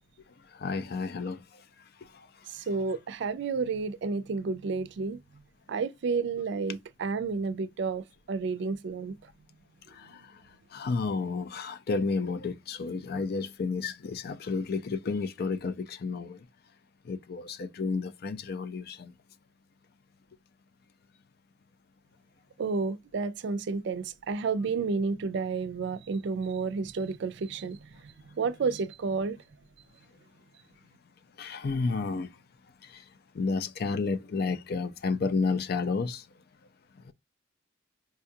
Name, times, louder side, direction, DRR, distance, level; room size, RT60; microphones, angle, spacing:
voice 1, 0.6-1.4 10.0-10.2 10.7-16.4 17.1-19.1 31.4-32.3 32.9-33.0 33.3-36.2 37.1-37.2, left 4 dB, 55° left, 0.4 m, -31 dB
voice 2, 2.5-5.2 5.7-9.2 22.6-27.8 28.4-29.4, right 4 dB, 65° right, 0.4 m, -31 dB
4.6 x 2.3 x 2.6 m
head